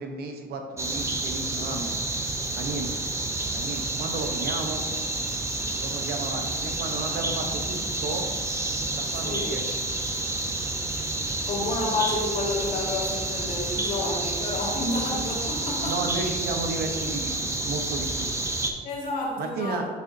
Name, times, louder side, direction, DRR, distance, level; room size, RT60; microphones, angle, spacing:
voice 1, 0.0-2.0 2.5-2.9 3.5-4.8 5.8-8.3 8.9-9.8 15.8-18.3 19.4-19.9, right 3 dB, 70° right, 4 dB, 1.0 m, -33 dB
sound 1, 0.8-18.7, right 2 dB, 15° right, 0.7 m, -29 dB
voice 2, 9.1-9.5 11.5-16.0 18.8-19.9, left 2 dB, 55° left, -4 dB, 2.0 m, -30 dB
7.9 x 5.2 x 2.7 m, 1.5 s
cardioid pair, 110°, 17 cm